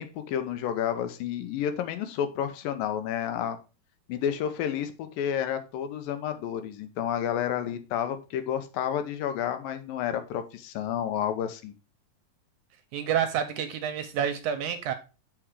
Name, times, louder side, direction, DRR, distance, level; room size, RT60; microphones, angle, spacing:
voice 1, 0.0-3.6 4.1-11.7, left 9 dB, 85° left, 2.6 m, -30 dB
voice 2, 12.9-14.9, right 8 dB, 80° right, 1.9 m, -28 dB
7.6 x 4.6 x 4.7 m
omnidirectional pair, 3.9 m